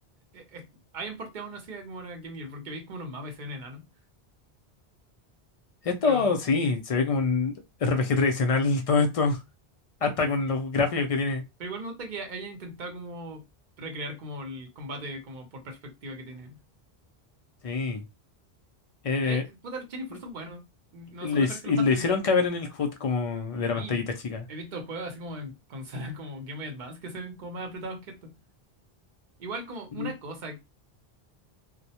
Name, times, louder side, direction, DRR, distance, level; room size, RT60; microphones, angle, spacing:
voice 1, 0.3-0.7 0.9-3.9 6.0-6.3 10.0-10.1 10.4-10.5 11.6-13.4 13.8-16.6 19.2-20.6 20.9-22.3 23.7-24.0 24.5-28.4 29.4-30.6, right 1 dB, 55° right, 0.7 m, -38 dB
voice 2, 5.8-9.4 10.0-11.4 17.6-18.0 19.0-19.4 21.2-24.4 30.0-30.1, left 4 dB, 50° left, 0.4 m, -25 dB
2.2 x 2.0 x 2.7 m
omnidirectional pair, 1.1 m